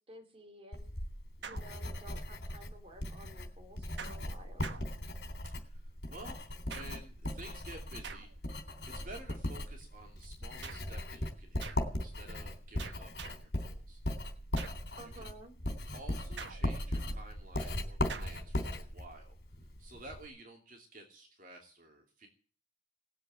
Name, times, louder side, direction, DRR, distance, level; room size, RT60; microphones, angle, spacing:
voice 1, 0.1-0.9 1.4-4.8 14.9-15.5, right 1 dB, 35° right, 3 dB, 3.1 m, -53 dB
Writing, 0.7-20.3, left 1 dB, 70° left, 3.6 m, -38 dB
sound 1, 1.4-2.3 4.0-5.5 6.7-7.3 8.0-8.7 10.6-11.0 11.6-12.0 12.8-13.6 14.6-15.0 16.4-17.0 18.1-18.5, right 5 dB, 85° right, 1.1 m, -47 dB
voice 2, 5.5-8.3 8.9-14.0 14.6-14.7 15.0-15.3 15.9-19.3 19.8-22.3, right 2 dB, 50° right, 2 dB, 2.7 m, -52 dB
19.0 x 7.8 x 8.8 m, 0.40 s
head